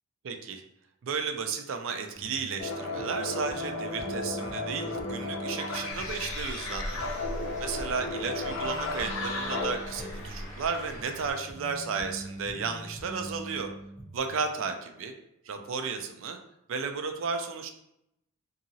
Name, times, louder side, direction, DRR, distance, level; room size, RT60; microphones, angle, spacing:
voice 1, 0.2-0.6 1.0-7.1 7.6-13.7 14.1-15.1 15.5-16.4 16.7-17.7, right 5 dB, 65° right, 6 dB, 0.4 m, -33 dB
sound 1, 2.1-14.2, right 1 dB, 10° left, 1.0 m, -44 dB
sound 2, 2.6-10.3, left 2 dB, 70° left, 0.5 m, -35 dB
Bird, 5.9-11.3, equal, 35° left, 1.2 m, -40 dB
2.8 x 2.6 x 2.6 m, 0.80 s
head